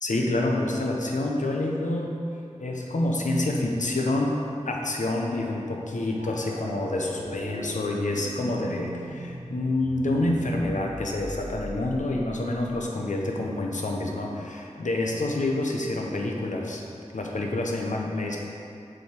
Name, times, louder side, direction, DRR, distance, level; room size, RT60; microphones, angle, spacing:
voice 1, 0.0-2.2 2.6-4.4 4.6-16.8 17.1-18.4, left 2 dB, 85° left, 0 dB, 0.8 m, -27 dB
sound 1, 6.2-12.8, right 1 dB, 80° right, 1.0 m, -40 dB
6.3 x 4.8 x 4.5 m, 2.7 s
wide cardioid pair, 45°, 13 cm